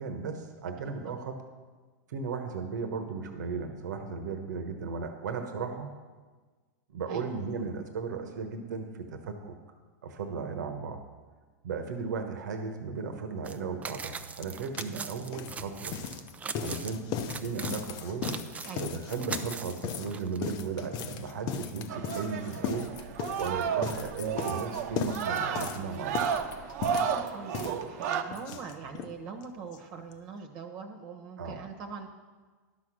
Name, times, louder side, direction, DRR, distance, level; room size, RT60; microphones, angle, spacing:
voice 1, 0.0-1.4 2.1-5.9 6.9-9.5 10.0-11.0 11.6-16.0 16.6-18.4 18.8-22.9 23.4-26.3 31.4-31.6, right 5 dB, 80° right, 6 dB, 1.2 m, -36 dB
sound 1, 13.4-13.6 13.8-16.9 17.3-20.4, right 5 dB, 15° right, 0.5 m, -40 dB
sound 2, 14.4-14.5 14.7-29.1 29.4-29.5 29.7-29.8 30.1-30.2, left 7 dB, 45° left, 0.8 m, -37 dB
sound 3, 21.9-28.2, right 7 dB, 60° right, 0.9 m, -32 dB
voice 2, 26.8-32.1, right 5 dB, 45° right, 4 dB, 1.2 m, -43 dB
11.5 x 6.3 x 6.3 m, 1.4 s
hypercardioid pair, 125°, 9 cm